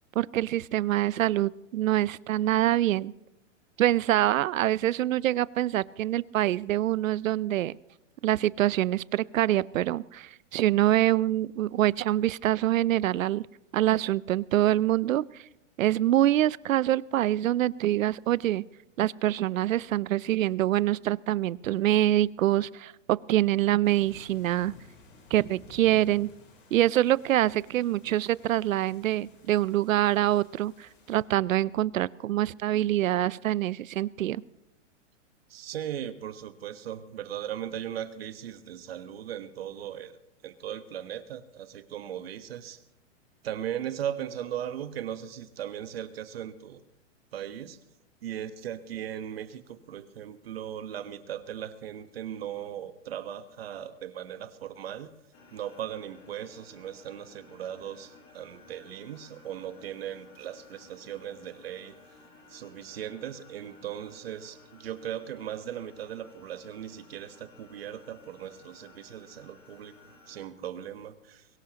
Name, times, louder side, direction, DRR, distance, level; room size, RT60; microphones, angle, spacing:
voice 1, 0.2-3.1 3.8-7.7 8.2-13.5 13.7-15.2 15.8-18.6 19.0-24.7 25.3-26.3 26.7-34.4, right 13 dB, 90° right, 21 dB, 0.6 m, -25 dB
sound 1, 23.8-31.2, left 3 dB, 40° left, 3.7 m, -54 dB
voice 2, 35.5-40.2 40.4-42.8 43.4-46.8 47.3-47.8 48.2-55.1 55.5-61.9 62.5-69.9 70.3-71.4, right 10 dB, 50° right, 10 dB, 1.2 m, -38 dB
sound 2, 55.3-70.5, left 3 dB, 20° left, 2.0 m, -56 dB
22.5 x 18.0 x 2.9 m, 0.94 s
hypercardioid pair, 180°, 38 cm